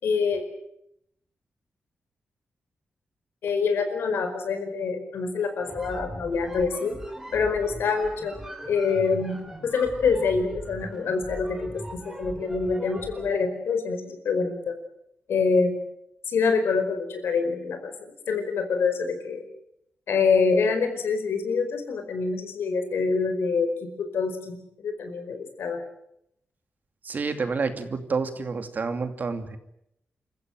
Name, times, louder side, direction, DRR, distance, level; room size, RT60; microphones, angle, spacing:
voice 1, 0.0-0.4 3.4-7.0 7.3-8.4 8.7-14.8 15.3-15.8 16.3-19.4 20.1-25.8, left 5 dB, 85° left, 7 dB, 4.9 m, -26 dB
sound 1, 5.6-13.4, right 1 dB, 10° right, 3.8 m, -40 dB
voice 2, 27.0-29.6, right 4 dB, 45° right, 8 dB, 2.6 m, -29 dB
28.0 x 15.0 x 9.3 m, 0.79 s
wide cardioid pair, 110°, 4 cm